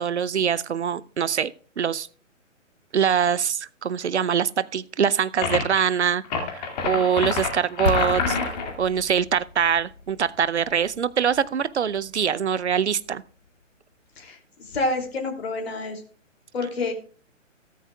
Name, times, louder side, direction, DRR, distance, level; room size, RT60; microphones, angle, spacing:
voice 1, 0.0-2.1 2.9-6.2 6.5-8.4 8.8-13.2, right 7 dB, 60° right, 18 dB, 0.6 m, -24 dB
sound 1, 5.4-5.8 6.2-8.8, left 5 dB, 30° left, 2.3 m, -27 dB
sound 2, 7.9-13.6, left 4 dB, 75° left, 1.4 m, -35 dB
voice 2, 14.7-16.0 16.5-16.9, left 2 dB, 50° left, 3 dB, 2.9 m, -28 dB
14.0 x 13.5 x 2.3 m, 0.42 s
figure-of-eight pair, 135°, 39 cm